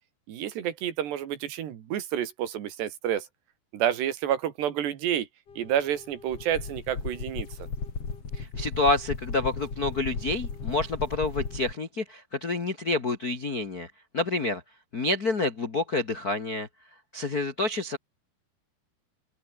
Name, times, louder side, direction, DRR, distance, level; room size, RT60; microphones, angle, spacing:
voice 1, 0.3-3.3 3.7-5.3 5.6-7.5, right 10 dB, 80° right, 4.4 m, -29 dB
sound 1, 5.5-11.7, left 5 dB, 35° left, 4.7 m, -36 dB
voice 2, 8.3-14.6 14.9-16.7 17.1-18.0, left 2 dB, 55° left, 1.0 m, -28 dB
open air
omnidirectional pair, 4.8 m